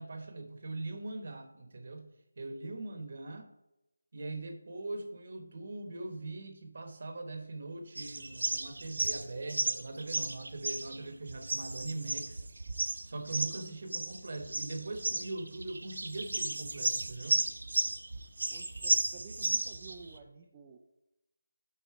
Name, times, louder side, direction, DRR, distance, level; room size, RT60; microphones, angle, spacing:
voice 1, 0.0-2.1 2.4-3.5 4.1-12.5 13.0-17.4, right 2 dB, 35° right, 6 dB, 0.9 m, -41 dB
sound 1, 8.0-20.2, right 2 dB, 60° right, 0.7 m, -34 dB
voice 2, 18.5-20.8, right 5 dB, 10° right, -2 dB, 0.3 m, -52 dB
9.0 x 4.1 x 4.6 m, 0.91 s
figure-of-eight pair, 180°, 0 cm